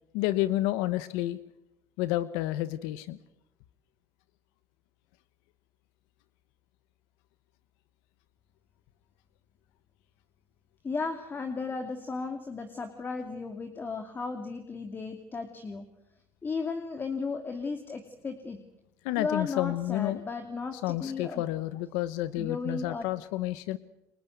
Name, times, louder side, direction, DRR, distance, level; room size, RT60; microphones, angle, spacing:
voice 1, 0.1-1.4 2.0-3.2 19.0-20.2 20.8-23.8, left 15 dB, 90° left, 15 dB, 1.0 m, -30 dB
voice 2, 10.8-15.9 16.4-18.6 19.2-21.4 22.4-23.1, left 4 dB, 30° left, 7 dB, 2.6 m, -35 dB
29.5 x 25.0 x 8.1 m, 0.86 s
cardioid pair, 100°, 7 cm